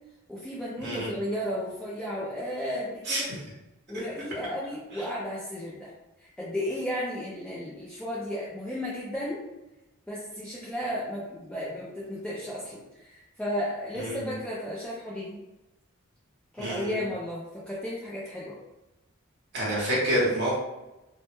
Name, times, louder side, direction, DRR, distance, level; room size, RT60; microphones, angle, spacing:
voice 1, 0.3-3.3 3.9-5.9 6.2-9.4 10.1-15.4 16.5-18.6, left 1 dB, 5° left, -8 dB, 0.3 m, -34 dB
voice 2, 14.0-14.3 16.6-17.0 19.5-20.6, right 1 dB, 50° right, -6 dB, 0.7 m, -27 dB
2.1 x 2.0 x 2.9 m, 0.99 s
head